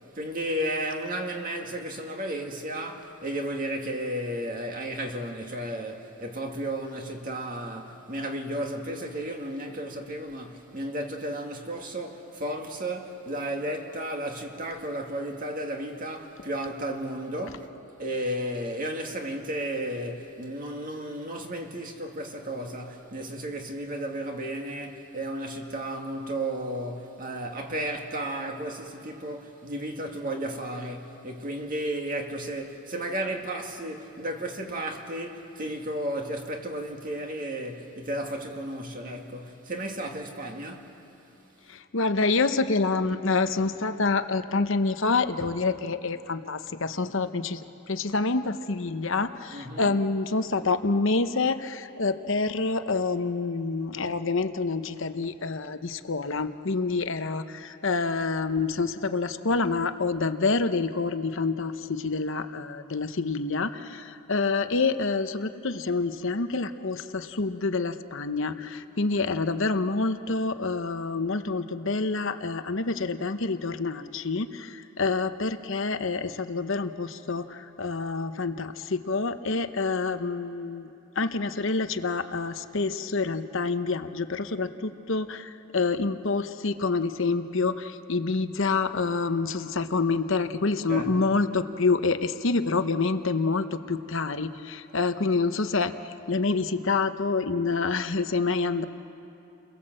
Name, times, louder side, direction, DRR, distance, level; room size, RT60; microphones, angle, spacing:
voice 1, 0.1-41.0 49.5-50.0 90.9-91.1, right 1 dB, 40° right, 2.0 m, -33 dB
voice 2, 41.7-47.6 47.9-80.9 81.2-95.9 96.3-98.8, left 3 dB, 60° left, 0.9 m, -27 dB
30.0 x 21.5 x 7.7 m
head